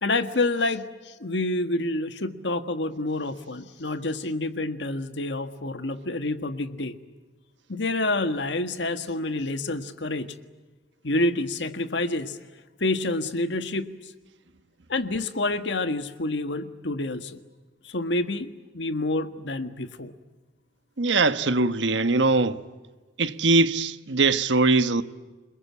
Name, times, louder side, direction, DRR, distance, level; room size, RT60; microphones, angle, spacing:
voice 1, 0.0-6.9 7.7-10.3 11.0-12.4 12.8-14.1 14.9-17.4 17.8-18.5 18.7-20.1, left 2 dB, 80° left, 1.6 m, -28 dB
voice 2, 21.0-22.6 23.2-25.0, right 3 dB, 85° right, 1.2 m, -21 dB
28.5 x 21.5 x 8.6 m
head